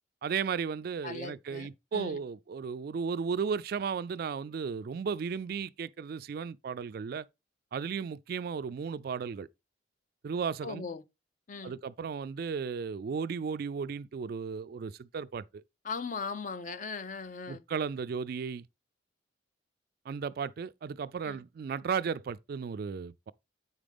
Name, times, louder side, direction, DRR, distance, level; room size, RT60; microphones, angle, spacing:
voice 1, 0.2-7.3 7.7-9.5 10.2-10.9 11.6-15.6 17.5-18.7 20.1-23.3, right 6 dB, 50° right, 0.3 m, -35 dB
voice 2, 1.0-2.2 10.6-11.0 11.5-11.7 15.8-17.6 21.2-21.4, left 4 dB, 45° left, 0.6 m, -39 dB
8.3 x 5.0 x 3.5 m
head